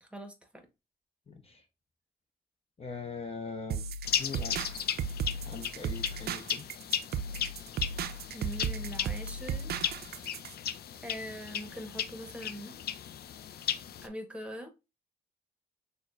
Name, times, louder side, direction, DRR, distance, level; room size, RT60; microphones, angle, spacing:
voice 1, 0.0-0.7 8.3-9.7 11.0-12.8 14.0-14.7, equal, 5° right, 1.0 m, -42 dB
voice 2, 1.3-1.6 2.8-3.9 4.2-4.8 5.4-6.7, left 4 dB, 35° left, 0.7 m, -41 dB
sound 1, 3.7-10.5, right 5 dB, 70° right, 0.4 m, -36 dB
sound 2, 4.0-14.1, left 9 dB, 70° left, 0.4 m, -36 dB
6.1 x 2.2 x 2.4 m
cardioid pair, 75°, 17 cm